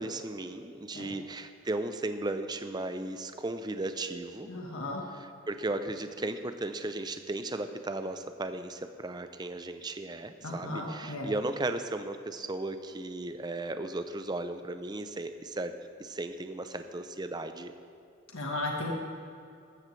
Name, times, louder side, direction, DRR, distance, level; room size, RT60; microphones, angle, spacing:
voice 1, 0.0-4.5 5.1-15.7 16.0-17.7, right 2 dB, 20° right, 9 dB, 0.5 m, -36 dB
voice 2, 4.5-5.0 10.4-11.3 18.3-18.9, left 2 dB, 80° left, 0 dB, 1.4 m, -35 dB
14.5 x 13.5 x 3.3 m, 2.6 s
head